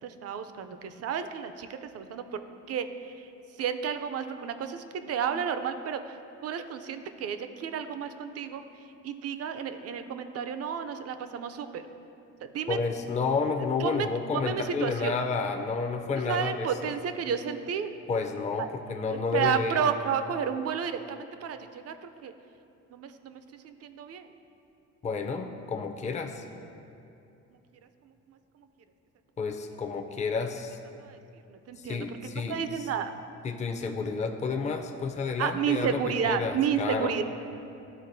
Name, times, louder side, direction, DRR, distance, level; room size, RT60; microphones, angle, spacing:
voice 1, 0.0-2.4 2.7-3.3 3.6-6.2 6.4-8.6 9.0-11.8 12.5-12.8 13.8-14.1 14.3-15.2 16.3-17.9 18.6-18.7 19.1-22.3 22.9-24.3 31.0-31.2 31.5-33.1 35.4-37.2, right 7 dB, 55° right, 9 dB, 0.5 m, -31 dB
voice 2, 12.7-16.9 18.1-19.8 25.0-26.4 29.4-30.8 31.8-32.9 33.4-37.2, left 4 dB, 25° left, 4 dB, 0.5 m, -30 dB
12.0 x 4.0 x 2.6 m, 2.7 s
cardioid pair, 90°, 30 cm